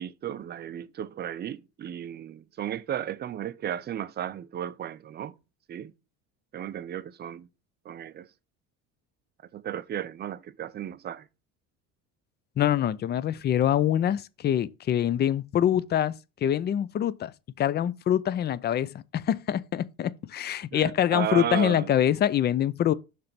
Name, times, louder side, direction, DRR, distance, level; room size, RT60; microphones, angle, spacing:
voice 1, 0.0-5.3 5.7-5.9 6.5-7.5 7.9-8.3 9.5-11.3 20.7-21.9, right 10 dB, 30° right, 0.5 m, -34 dB
voice 2, 12.6-16.1 16.4-17.3 17.6-22.9, left 10 dB, 30° left, 0.4 m, -25 dB
6.6 x 3.4 x 5.8 m
cardioid pair, 125°, 36 cm